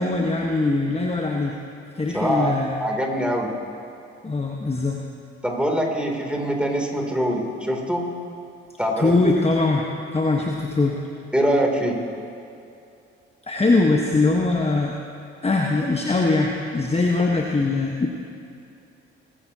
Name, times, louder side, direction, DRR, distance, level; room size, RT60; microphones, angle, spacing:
voice 1, 0.0-1.6 1.9-2.8 4.2-5.0 9.0-9.8 10.1-11.0 13.5-14.9 15.4-18.1, left 3 dB, 20° left, 0 dB, 1.3 m, -21 dB
voice 2, 2.1-2.5 2.8-3.5 5.4-8.1 8.8-9.3 11.3-12.0, equal, 5° right, 0 dB, 3.0 m, -23 dB
22.0 x 11.0 x 2.9 m, 2.6 s
hypercardioid pair, 50°, 33 cm